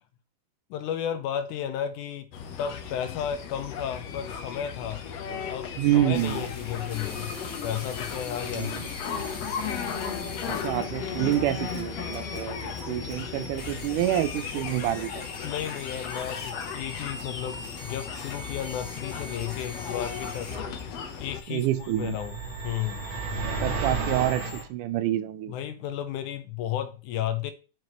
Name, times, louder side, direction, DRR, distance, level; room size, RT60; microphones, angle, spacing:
voice 1, 0.7-2.3 2.6-5.1 5.5-7.3 7.6-8.8 15.4-20.5 21.2-22.4 22.6-23.0 25.5-27.5, left 10 dB, 80° left, 2.1 m, -33 dB
sound 1, 2.3-21.4, left 7 dB, 65° left, 1.9 m, -36 dB
voice 2, 5.8-6.4 8.5-8.8 10.5-15.1 21.5-22.2 23.4-25.5, right 13 dB, 85° right, 2.2 m, -27 dB
sound 2, 6.1-24.6, left 3 dB, 40° left, 1.4 m, -43 dB
sound 3, 21.7-24.7, right 4 dB, 65° right, 2.6 m, -32 dB
10.5 x 4.7 x 3.1 m
omnidirectional pair, 3.6 m